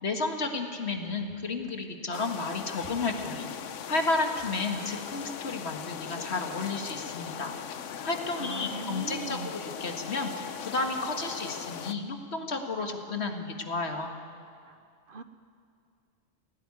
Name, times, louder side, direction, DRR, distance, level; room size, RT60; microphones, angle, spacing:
voice 1, 0.0-3.5 3.9-7.5 8.0-14.1, left 3 dB, 60° left, 4 dB, 2.0 m, -32 dB
sound 1, 2.1-11.9, left 8 dB, 80° left, 1.1 m, -39 dB
voice 2, 8.4-9.5 14.6-14.8 15.1-15.2, right 5 dB, 50° right, 9 dB, 0.9 m, -40 dB
17.0 x 17.0 x 9.7 m, 2.3 s
omnidirectional pair, 1.3 m